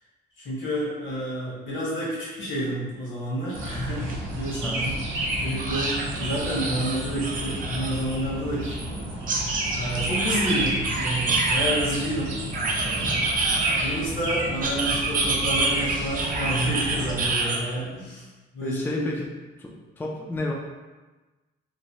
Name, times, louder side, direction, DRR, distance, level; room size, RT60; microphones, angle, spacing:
voice 1, 0.4-9.1 9.7-12.4 12.8-18.2 18.5-19.0, equal, 75° left, -8 dB, 1.4 m, -30 dB
sound 1, 3.5-17.3, right 1 dB, 85° right, 0.7 m, -31 dB
sound 2, 4.1-4.2 4.5-4.6 5.6-8.2 9.3-12.0 12.5-14.1 14.6-17.6, right 3 dB, 45° right, 0.5 m, -27 dB
voice 2, 4.6-4.9 18.6-19.2 19.6-19.7 20.0-20.5, left 1 dB, 10° left, -1 dB, 0.4 m, -30 dB
3.0 x 2.2 x 2.8 m, 1.2 s
cardioid pair, 90°, 20 cm